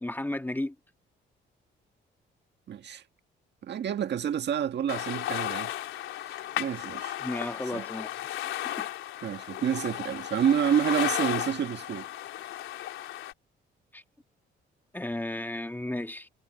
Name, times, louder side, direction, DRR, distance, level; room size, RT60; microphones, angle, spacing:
voice 1, 0.0-0.7 7.2-8.1 8.6-8.9 13.9-14.0 14.9-16.3, left 1 dB, 10° left, 1.6 m, -34 dB
voice 2, 2.7-3.0 3.6-5.7 6.2-7.2 7.7-7.8 9.2-12.1, right 9 dB, 60° right, 1.8 m, -29 dB
sound 1, 4.9-13.3, left 13 dB, 85° left, 3.8 m, -34 dB
cardioid pair, 90°, 20 cm